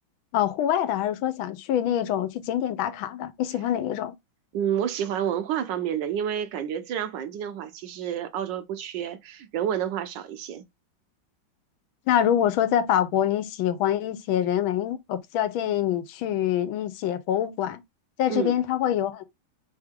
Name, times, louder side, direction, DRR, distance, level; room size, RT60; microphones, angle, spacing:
voice 1, 0.3-4.1 12.1-17.8 18.2-19.2, left 10 dB, 85° left, 1.5 m, -25 dB
voice 2, 4.5-10.6 18.3-18.6, right 9 dB, 75° right, 1.2 m, -29 dB
3.6 x 3.5 x 3.5 m
omnidirectional pair, 2.1 m